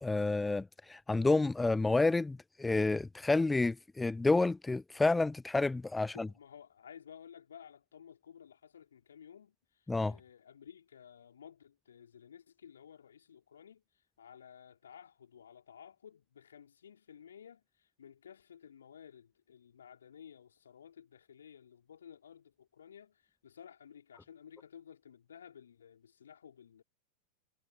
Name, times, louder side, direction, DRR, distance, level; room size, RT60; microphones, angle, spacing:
voice 1, 0.0-6.3 9.9-10.2, left 3 dB, 10° left, 0.3 m, -29 dB
voice 2, 6.1-13.8 14.2-26.8, left 8 dB, 65° left, 4.0 m, -55 dB
figure-of-eight pair, 90°, 0 cm